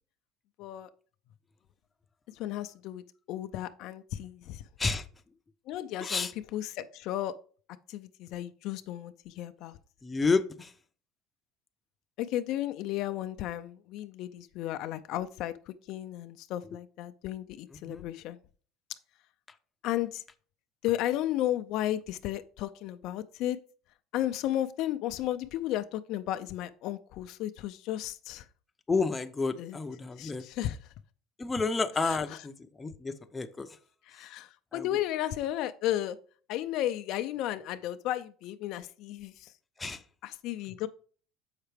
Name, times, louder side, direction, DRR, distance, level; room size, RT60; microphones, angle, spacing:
voice 1, 0.6-0.9 2.4-3.0 3.3-4.6 5.7-7.3 7.9-9.8 12.2-18.4 19.8-20.2 20.8-23.6 24.1-28.4 29.6-29.8 30.2-30.8 32.0-32.4 34.1-36.2 36.5-39.5 40.2-40.9, left 13 dB, 65° left, 10 dB, 0.4 m, -34 dB
voice 2, 6.0-6.3 10.0-10.7 17.8-18.0 28.9-30.4 31.4-32.5 32.8-33.7 34.7-34.9 39.8-40.0, left 4 dB, 15° left, 8 dB, 0.6 m, -30 dB
7.2 x 5.7 x 3.4 m, 0.43 s
supercardioid pair, 115°, 0 cm